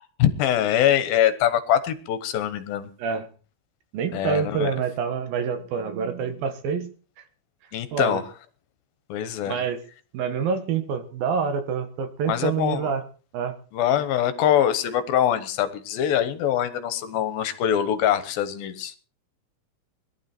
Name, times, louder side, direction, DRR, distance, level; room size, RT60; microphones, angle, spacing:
voice 1, 0.2-2.9 4.1-4.7 7.7-8.2 9.1-9.6 12.3-12.9 13.7-18.9, left 10 dB, 75° left, 11 dB, 2.9 m, -23 dB
voice 2, 3.9-6.9 7.9-8.2 9.4-9.8 10.1-13.0 13.3-13.6, right 6 dB, 70° right, 8 dB, 3.3 m, -27 dB
21.5 x 12.0 x 4.4 m, 0.39 s
omnidirectional pair, 4.4 m